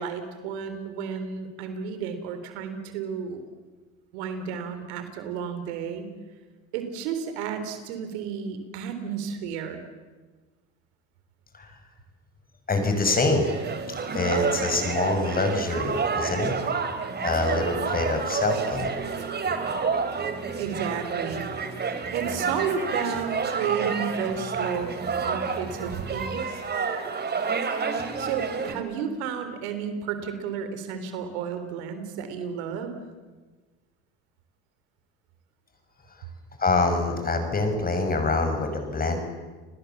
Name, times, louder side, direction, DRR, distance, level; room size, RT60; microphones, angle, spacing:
voice 1, 0.0-3.4 4.1-6.1 6.7-9.8 20.6-21.5 22.1-26.6 28.2-32.9, right 7 dB, 80° right, 8 dB, 3.8 m, -32 dB
voice 2, 12.7-13.7 14.1-16.6 17.2-18.9 36.6-39.2, left 3 dB, 25° left, 6 dB, 6.2 m, -25 dB
sound 1, 13.1-28.7, right 5 dB, 30° right, 3.5 m, -29 dB
29.5 x 20.0 x 7.3 m, 1.3 s
supercardioid pair, 90°, 32 cm